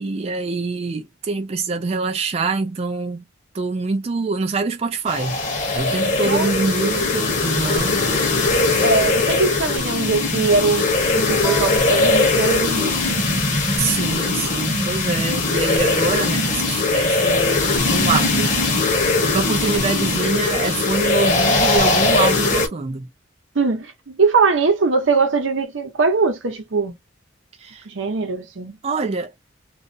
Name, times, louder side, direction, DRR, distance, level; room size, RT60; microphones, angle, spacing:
voice 1, 0.0-3.2 3.5-5.4 5.7-8.0 13.8-23.1 27.6-27.9 28.8-29.3, right 3 dB, 30° right, 0.3 m, -25 dB
sound 1, 5.1-22.7, left 3 dB, 40° left, 0.8 m, -20 dB
sound 2, 7.9-9.7 10.7-14.4, equal, 80° left, 0.9 m, -36 dB
voice 2, 8.8-13.2 23.5-26.9 27.9-28.7, right 4 dB, 85° right, 0.8 m, -21 dB
2.4 x 2.0 x 2.5 m
head